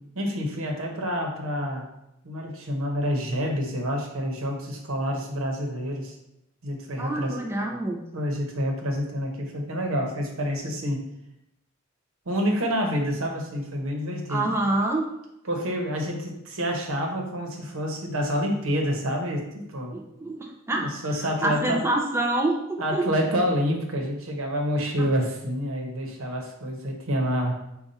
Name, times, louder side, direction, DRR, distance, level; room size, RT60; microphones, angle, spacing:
voice 1, 0.2-1.9 2.2-6.2 6.6-7.4 8.1-11.0 12.3-14.5 15.4-20.0 20.7-21.8 22.8-27.7, equal, 85° right, 1 dB, 0.9 m, -28 dB
voice 2, 7.0-8.0 14.3-15.0 19.9-20.9 21.4-23.1 25.0-25.1, right 2 dB, 10° right, 0 dB, 0.4 m, -26 dB
5.3 x 2.4 x 4.1 m, 0.86 s
head